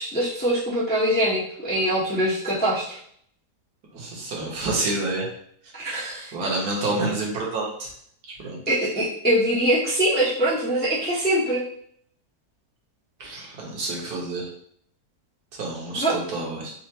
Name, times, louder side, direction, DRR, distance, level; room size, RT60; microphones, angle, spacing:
voice 1, 0.0-3.0 5.7-6.3 8.7-11.6 15.9-16.2, right 1 dB, 15° left, -8 dB, 0.4 m, -23 dB
voice 2, 3.9-5.3 6.3-7.9 8.3-8.6 13.2-14.5 15.6-16.7, right 2 dB, 65° right, -2 dB, 1.5 m, -28 dB
4.2 x 2.4 x 2.8 m, 0.63 s
omnidirectional pair, 1.8 m